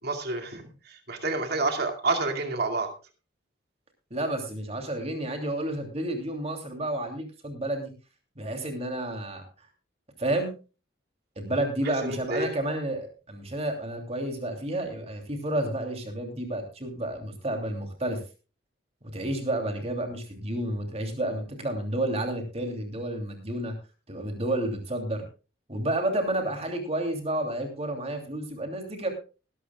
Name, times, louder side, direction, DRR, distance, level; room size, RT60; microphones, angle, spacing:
voice 1, 0.0-2.9 11.8-12.5, right 3 dB, 55° right, 5 dB, 2.4 m, -29 dB
voice 2, 4.1-7.9 8.4-9.7 10.2-10.5 11.4-18.2 19.0-23.7 24.1-25.2 25.7-29.1, right 1 dB, 30° right, 4 dB, 2.9 m, -30 dB
20.0 x 12.0 x 2.3 m, 0.33 s
head